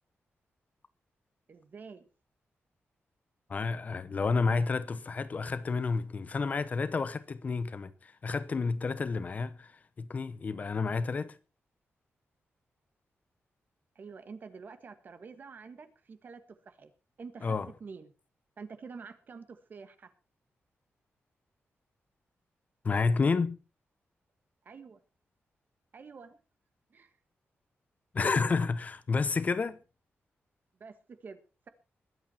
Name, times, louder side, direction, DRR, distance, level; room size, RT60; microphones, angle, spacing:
voice 1, 1.5-2.1 13.9-16.9 17.2-17.5 17.8-18.1 18.6-20.1 24.6-25.0 25.9-26.4 26.9-27.1 30.8-31.4, right 5 dB, 45° right, 1.6 m, -47 dB
voice 2, 3.5-9.7 10.0-11.4 17.4-17.7 22.8-23.6 28.1-29.8, left 4 dB, 35° left, 0.8 m, -30 dB
21.5 x 8.7 x 4.3 m
wide cardioid pair, 180°, 4 cm